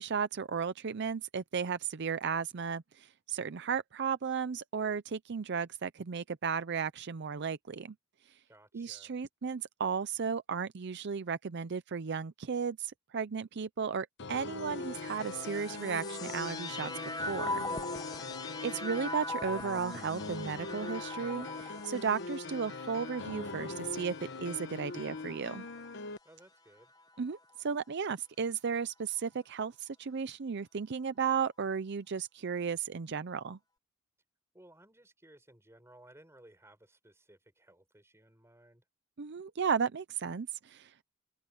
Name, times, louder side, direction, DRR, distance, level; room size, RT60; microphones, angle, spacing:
voice 1, 0.0-7.9 8.7-17.7 18.0-18.1 18.6-25.7 27.2-33.6 39.2-41.0, right 6 dB, 60° right, 0.5 m, -35 dB
voice 2, 8.5-9.1 18.1-18.6 26.2-26.9 34.5-38.8, right 1 dB, 15° right, 5.1 m, -59 dB
sound 1, 14.2-26.2, left 3 dB, 60° left, 1.1 m, -42 dB
sound 2, 14.6-26.0 26.8-27.6, left 2 dB, 20° left, 0.9 m, -42 dB
head